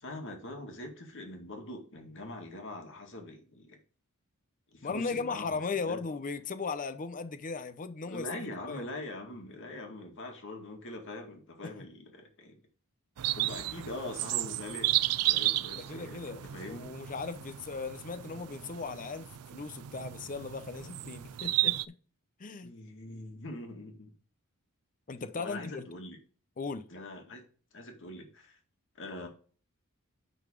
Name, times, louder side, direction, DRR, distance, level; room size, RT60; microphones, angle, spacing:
voice 1, 0.0-3.8 4.7-6.0 8.0-12.6 13.3-14.9 15.3-16.9 22.6-24.1 25.4-26.2 26.9-27.4 27.7-28.6 29.0-29.3, left 1 dB, 60° left, 2.1 m, -43 dB
voice 2, 4.8-8.9 11.6-11.9 15.8-22.0 22.4-22.7 25.1-25.8 26.6-26.9, left 4 dB, 35° left, 0.7 m, -37 dB
sound 1, 13.2-21.8, right 16 dB, 90° right, 0.4 m, -33 dB
9.1 x 4.0 x 5.1 m
head